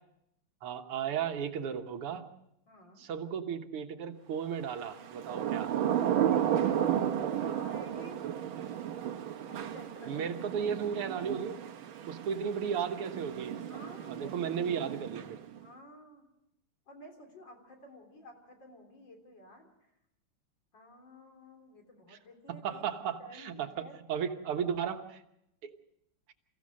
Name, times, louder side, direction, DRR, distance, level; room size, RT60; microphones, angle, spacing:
voice 1, 0.6-2.2 3.0-5.7 10.1-11.6 12.1-13.6 14.1-15.4 22.5-25.2 25.6-25.7, right 7 dB, 85° right, 7 dB, 2.2 m, -35 dB
voice 2, 2.7-3.1 6.1-8.2 9.5-10.5 13.7-14.7 15.6-16.3 16.9-19.9 20.7-24.0, left 1 dB, 55° left, 2 dB, 4.2 m, -51 dB
Thunder / Rain, 5.0-15.6, right 10 dB, 70° right, 1.8 m, -33 dB
28.0 x 15.5 x 6.3 m, 0.81 s
omnidirectional pair, 2.4 m